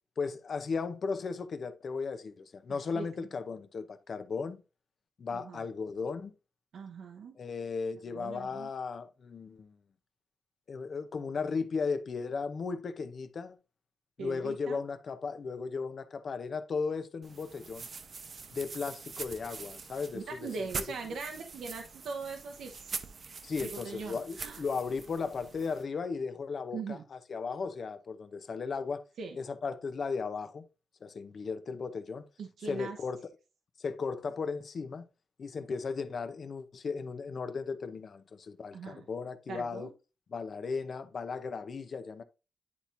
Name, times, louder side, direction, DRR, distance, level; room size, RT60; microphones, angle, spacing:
voice 1, 0.2-4.6 5.2-6.3 7.4-9.8 10.7-13.6 14.2-17.9 18.5-20.8 23.4-29.0 29.3-30.7 31.0-32.3 32.6-33.2 33.8-35.1 35.4-39.9 40.3-42.2, left 5 dB, 50° left, 0.7 m, -36 dB
voice 2, 2.7-3.3 5.3-5.7 6.7-7.3 8.1-8.7 14.2-14.8 20.1-23.1 23.6-24.6 26.7-27.1 29.2-29.4 32.4-33.0 38.7-39.1 39.5-39.9, right 5 dB, 85° right, 0.9 m, -41 dB
sound 1, 17.2-25.8, right 5 dB, 45° right, 0.8 m, -44 dB
9.8 x 4.4 x 2.6 m
wide cardioid pair, 140°, 0 cm